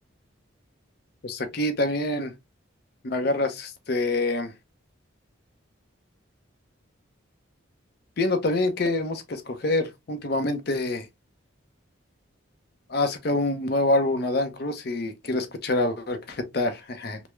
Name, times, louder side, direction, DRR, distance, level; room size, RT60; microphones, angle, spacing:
voice 1, 1.2-2.3 3.0-4.5 8.2-11.1 12.9-17.2, left 2 dB, 50° left, 0.6 m, -26 dB
3.4 x 2.0 x 3.0 m
head